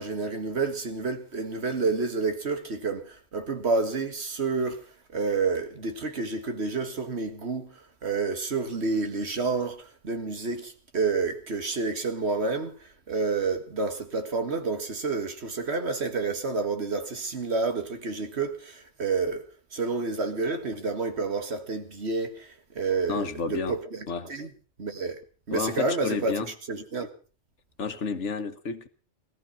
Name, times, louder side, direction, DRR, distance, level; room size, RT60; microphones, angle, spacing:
voice 1, 0.0-24.5 24.8-25.2 25.5-26.3 26.7-27.1, right 4 dB, 65° right, 2.0 m, -29 dB
voice 2, 23.1-23.8 24.1-24.3 25.5-26.5 27.8-28.9, left 5 dB, 85° left, 1.6 m, -31 dB
18.5 x 13.5 x 5.7 m
omnidirectional pair, 1.2 m